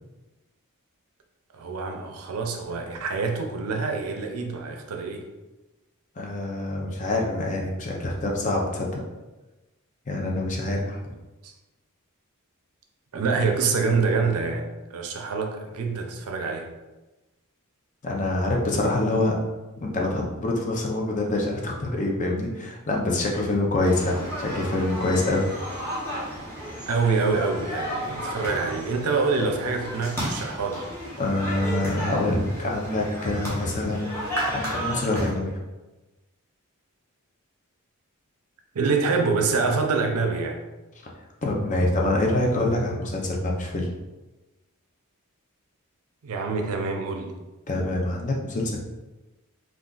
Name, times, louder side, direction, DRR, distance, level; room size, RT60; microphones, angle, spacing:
voice 1, 1.5-5.3 11.4-11.5 13.1-16.7 26.8-30.9 38.7-40.6 46.2-47.3, right 4 dB, 85° right, 3 dB, 0.5 m, -26 dB
voice 2, 6.2-9.0 10.1-11.0 18.0-19.4 19.8-25.5 30.4-30.5 31.2-35.6 41.4-43.9 47.7-48.8, left 2 dB, 35° left, 0 dB, 0.5 m, -26 dB
sound 1, 23.8-35.3, equal, 10° left, 0.8 m, -33 dB
2.4 x 2.4 x 3.7 m, 1.1 s
head